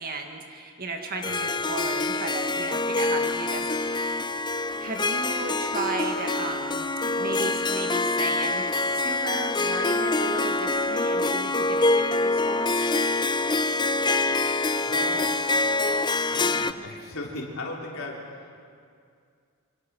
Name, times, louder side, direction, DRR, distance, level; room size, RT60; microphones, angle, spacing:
voice 1, 0.0-4.1 4.8-8.6 8.9-12.7, right 3 dB, 45° right, 3 dB, 1.9 m, -35 dB
Harp, 1.2-16.7, left 2 dB, 20° left, 0.5 m, -25 dB
voice 2, 14.9-15.3 16.3-18.6, left 2 dB, 75° left, -2 dB, 3.4 m, -37 dB
27.0 x 24.0 x 6.2 m, 2.3 s
head